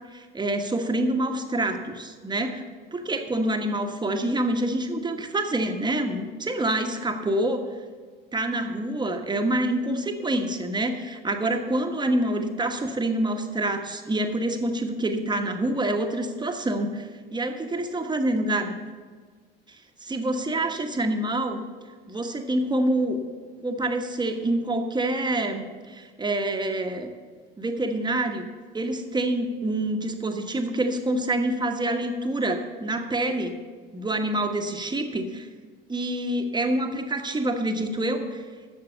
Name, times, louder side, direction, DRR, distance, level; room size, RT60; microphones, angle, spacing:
voice 1, 0.1-2.6 2.9-7.6 8.3-18.8 20.0-21.6 22.1-23.2 23.6-27.1 27.6-28.4 28.7-33.5 33.9-35.5 35.9-38.4, right 1 dB, 15° right, 5 dB, 1.3 m, -26 dB
12.0 x 7.4 x 6.9 m, 1.5 s
figure-of-eight pair, 65°, 29 cm